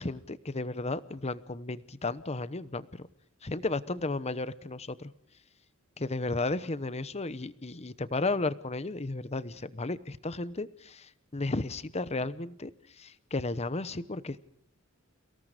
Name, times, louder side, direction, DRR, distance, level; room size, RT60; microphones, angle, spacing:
voice 1, 0.0-3.1 3.4-5.1 6.0-12.7 13.0-14.4, left 2 dB, 30° left, 15 dB, 0.9 m, -34 dB
29.5 x 18.0 x 5.1 m, 0.72 s
head